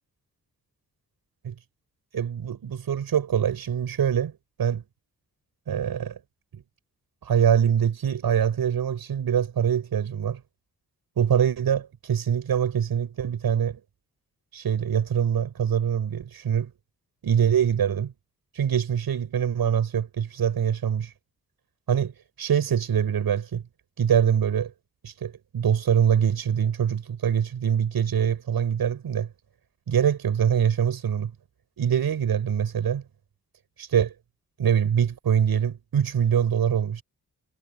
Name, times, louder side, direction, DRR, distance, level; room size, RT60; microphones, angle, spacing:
voice 1, 2.1-4.8 5.7-6.2 6.5-6.6 7.2-10.4 11.2-13.8 14.5-16.7 17.2-18.1 18.6-21.1 21.9-23.6 24.0-24.7 25.0-29.3 29.9-31.3 31.8-33.0 33.8-34.1 34.6-37.0, right 8 dB, 85° right, 6.9 m, -24 dB
cardioid pair, 70°, 35 cm